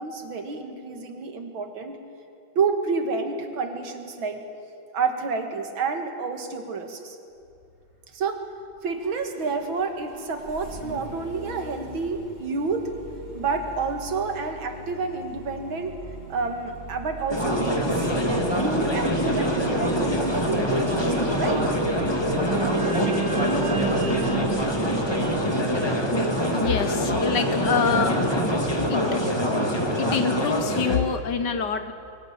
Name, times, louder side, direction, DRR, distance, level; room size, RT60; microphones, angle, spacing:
voice 1, 0.0-2.0 2.6-4.4 4.9-7.2 8.1-8.4 8.8-12.9 13.3-16.0 16.3-18.1 18.6-21.7, right 4 dB, 70° right, 5 dB, 2.5 m, -29 dB
Engine starting, 7.3-25.7, right 2 dB, 25° right, 5.9 m, -42 dB
sound 1, 17.3-31.0, equal, 10° left, 2.0 m, -24 dB
sound 2, 22.4-26.8, right 7 dB, 50° right, 2.9 m, -32 dB
voice 2, 26.5-28.2 28.9-29.0 30.0-31.9, left 6 dB, 60° left, 9 dB, 1.5 m, -26 dB
22.5 x 17.5 x 8.8 m, 2.5 s
omnidirectional pair, 2.3 m